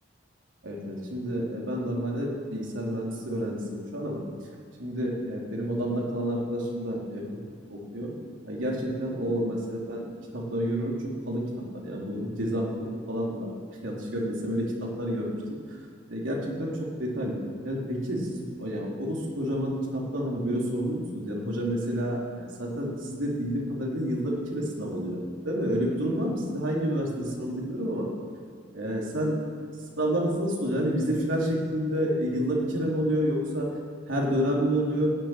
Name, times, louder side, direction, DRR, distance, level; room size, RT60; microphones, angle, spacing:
voice 1, 0.6-4.2 4.8-7.3 7.7-8.1 8.4-10.1 10.3-11.0 11.3-11.4 11.7-12.7 13.1-13.5 13.8-15.6 16.1-17.4 17.6-28.1 28.7-29.4 30.0-33.7 34.1-35.1, equal, 85° right, -3 dB, 3.6 m, -29 dB
15.0 x 7.6 x 9.8 m, 2.1 s
head